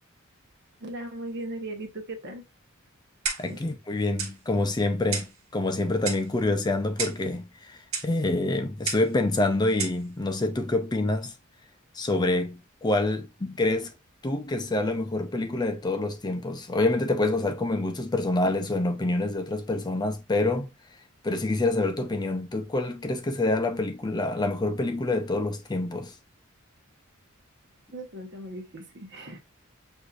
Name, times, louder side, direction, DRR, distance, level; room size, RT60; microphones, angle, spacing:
voice 1, 0.8-2.4 3.5-3.6 27.9-29.4, right 1 dB, 55° right, 1.0 m, -38 dB
Clock, 3.3-3.6 4.2-4.4 5.1-5.4 6.1-6.3 7.0-7.3 7.9-8.1 8.9-9.1 9.8-10.0, right 5 dB, 80° right, 1.3 m, -32 dB
voice 2, 3.4-11.3 11.9-13.9 14.2-20.7 21.2-26.1, left 2 dB, 20° left, 0.5 m, -27 dB
6.3 x 2.7 x 2.4 m
head